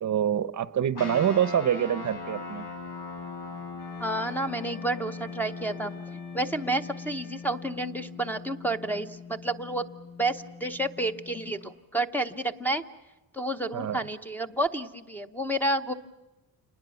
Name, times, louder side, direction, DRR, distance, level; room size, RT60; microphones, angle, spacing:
voice 1, 0.0-2.6 13.7-14.0, right 9 dB, 50° right, 16 dB, 0.8 m, -26 dB
sound 1, 0.9-11.6, left 4 dB, 85° left, 6.8 m, -40 dB
Wind instrument woodwind instrument, 3.8-8.0, left 2 dB, 65° left, 7.3 m, -53 dB
voice 2, 4.0-6.0 6.3-9.8 10.2-12.8 13.3-15.9, right 1 dB, 5° left, 2 dB, 0.8 m, -30 dB
28.5 x 20.5 x 7.0 m, 1.0 s
wide cardioid pair, 170°, 38 cm